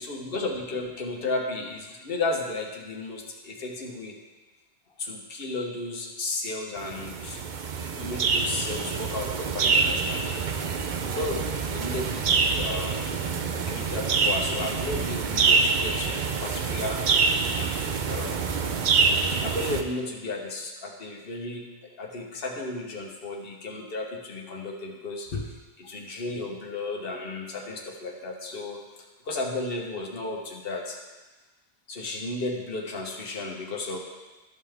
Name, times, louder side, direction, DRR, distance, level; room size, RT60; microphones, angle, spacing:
voice 1, 0.0-4.2 5.0-7.4 8.0-10.4 11.0-11.4 11.7-13.2 13.7-17.0 18.1-18.9 19.4-21.7 21.9-28.8 29.2-31.0 31.9-34.0, left 2 dB, 60° left, 0 dB, 1.3 m, -33 dB
sound 1, 6.8-19.8, right 5 dB, 50° right, 0.7 m, -26 dB
13.0 x 5.6 x 3.5 m, 1.2 s
omnidirectional pair, 1.1 m